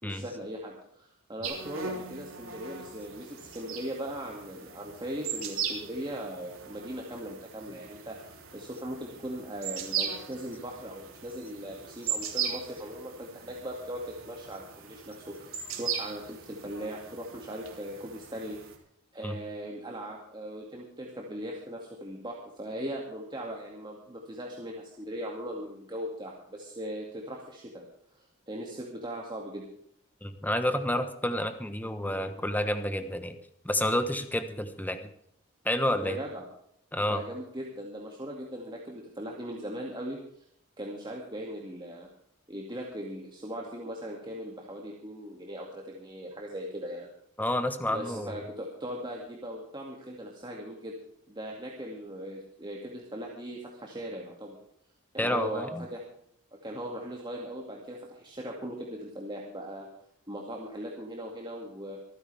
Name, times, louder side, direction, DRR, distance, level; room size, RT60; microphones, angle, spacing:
voice 1, 0.0-18.6 19.1-27.8 28.1-29.6 36.0-36.5 37.0-40.2 40.8-42.1 42.5-47.1 47.9-50.9 51.3-54.6 55.1-56.0 56.6-59.9 60.3-62.0, equal, 20° right, -1 dB, 2.3 m, -39 dB
sound 1, 1.4-18.8, right 7 dB, 70° right, 3.2 m, -39 dB
voice 2, 30.2-33.3 33.6-35.0 35.6-36.2 36.9-37.2 47.4-48.4 55.2-55.8, left 1 dB, 10° left, 8 dB, 1.2 m, -29 dB
26.0 x 9.8 x 3.5 m, 0.70 s
head